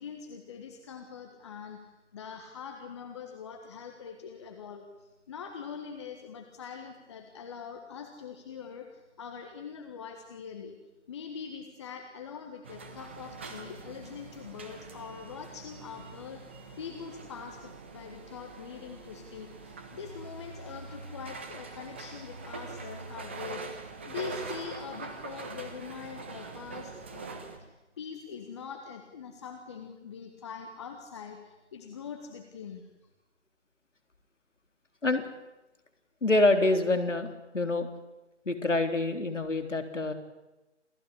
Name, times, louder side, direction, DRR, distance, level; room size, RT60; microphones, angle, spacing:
voice 1, 0.0-10.8 11.1-23.6 24.0-27.3 27.6-27.7 28.0-32.9, left 6 dB, 25° left, 5 dB, 1.6 m, -43 dB
sound 1, 12.6-27.6, right 3 dB, 10° right, 0.8 m, -43 dB
voice 2, 36.2-37.9 38.5-40.1, left 2 dB, 80° left, 7 dB, 3.8 m, -26 dB
27.5 x 16.0 x 10.0 m, 1.0 s
figure-of-eight pair, 155°, 36 cm